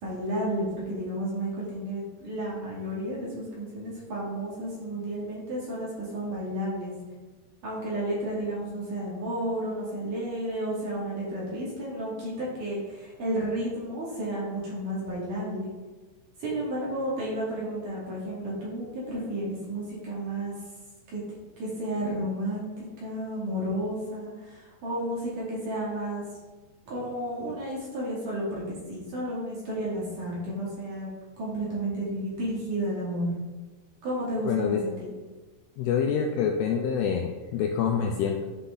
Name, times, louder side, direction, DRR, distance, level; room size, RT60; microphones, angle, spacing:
voice 1, 0.0-6.9 7.6-15.7 16.4-20.5 21.1-21.2 21.6-26.2 26.9-31.1 31.4-33.3 34.0-35.1, right 1 dB, 50° right, -7 dB, 3.8 m, -32 dB
voice 2, 34.4-34.8 35.8-38.5, left 7 dB, 80° left, 2 dB, 2.4 m, -26 dB
11.5 x 5.7 x 3.9 m, 1.3 s
omnidirectional pair, 5.3 m